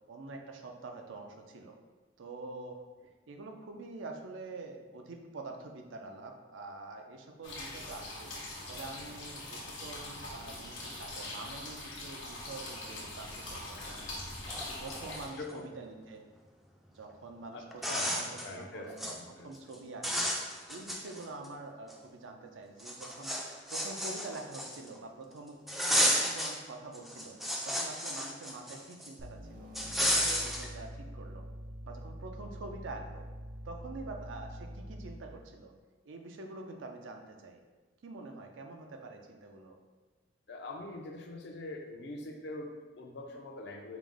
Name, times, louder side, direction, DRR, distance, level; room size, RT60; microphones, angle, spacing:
voice 1, 0.1-1.8 2.2-2.8 3.3-8.3 8.7-14.2 14.8-16.2 16.9-20.3 20.7-23.4 23.7-25.6 25.9-27.4 27.6-31.4 31.8-33.3 33.6-35.7 36.1-37.6 38.0-39.8, right 3 dB, 90° right, 4 dB, 0.5 m, -46 dB
sound 1, 7.4-15.3, left 2 dB, 80° left, 0.9 m, -42 dB
sound 2, 14.1-14.2 14.5-15.6 17.1-17.2 17.7-18.5 18.8-19.2 19.5-19.7 20.0-21.5 21.9-22.0 22.8-25.0 25.7-26.6 26.9-29.1 29.7-30.7, equal, ahead, 0.3 m, -32 dB
voice 2, 15.3-15.7 17.5-19.5 40.5-44.0, left 2 dB, 60° left, 2 dB, 0.5 m, -43 dB
sound 3, 29.2-35.3, equal, 45° right, 0.6 m, -45 dB
4.9 x 2.0 x 3.6 m, 1.3 s
head